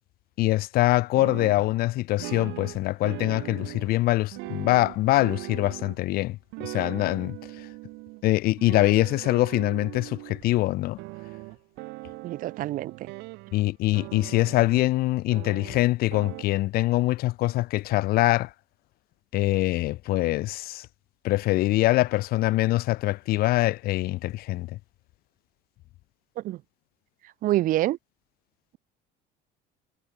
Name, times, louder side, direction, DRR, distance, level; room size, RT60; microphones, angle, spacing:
voice 1, 0.4-6.4 6.6-7.4 8.2-11.0 13.5-18.5 19.3-20.9 21.2-24.7, left 17 dB, 55° left, 1.8 m, -24 dB
sound 1, 1.2-1.7 2.2-4.0 4.3-6.0 6.5-8.2 8.6-10.5 11.0-13.7 13.9-14.8 15.3-16.4, right 24 dB, 70° right, 2.3 m, -40 dB
voice 2, 12.2-13.1 26.4-26.6 27.4-28.0, right 15 dB, 50° right, 1.6 m, -26 dB
cardioid pair, 160°, 19 cm